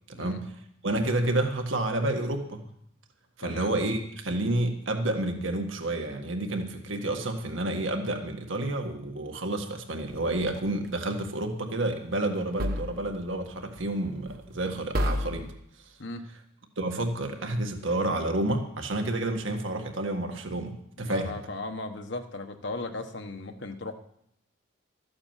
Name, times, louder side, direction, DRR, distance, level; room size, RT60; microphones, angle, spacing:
voice 1, 0.1-0.5 0.8-2.6 3.4-15.5 16.8-21.4, right 1 dB, 80° right, 4 dB, 1.8 m, -30 dB
voice 2, 3.4-3.7 16.0-16.3 21.0-23.9, left 2 dB, 65° left, 7 dB, 1.2 m, -37 dB
sound 1, 10.1-10.9 12.6-13.4 13.8-14.0 14.3-14.6 14.9-15.5, equal, 50° right, 1.1 m, -32 dB
13.5 x 8.7 x 7.4 m, 0.72 s
head